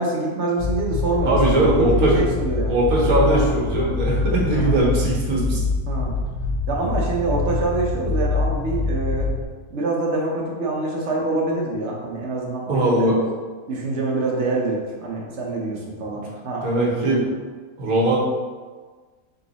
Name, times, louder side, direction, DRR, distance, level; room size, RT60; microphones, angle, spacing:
voice 1, 0.0-2.7 3.3-3.4 4.5-4.8 5.9-6.1 6.7-9.3 9.7-13.1 13.7-17.2, right 2 dB, 55° right, -2 dB, 1.0 m, -25 dB
sound 1, 0.6-9.4, left 3 dB, 90° left, 1.8 m, -24 dB
voice 2, 1.3-2.2 2.7-5.6 12.7-13.2 16.6-17.2 17.8-18.2, right 1 dB, 75° right, -3 dB, 1.4 m, -20 dB
3.8 x 3.0 x 4.0 m, 1.4 s
omnidirectional pair, 1.6 m